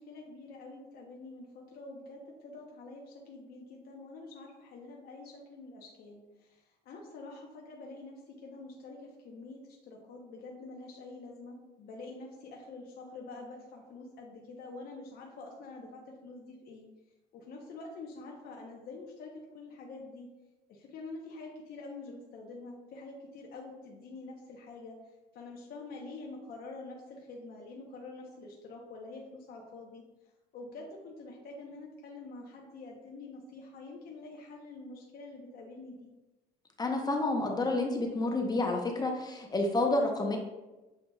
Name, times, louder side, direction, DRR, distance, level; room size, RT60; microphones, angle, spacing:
voice 1, 0.0-16.9 17.3-20.3 20.7-25.0 25.3-30.0 30.5-36.1, left 3 dB, 65° left, -1 dB, 0.7 m, -46 dB
voice 2, 36.8-40.4, left 2 dB, 25° left, 2 dB, 0.6 m, -29 dB
7.1 x 2.8 x 2.3 m, 1.1 s
cardioid pair, 110°, 17 cm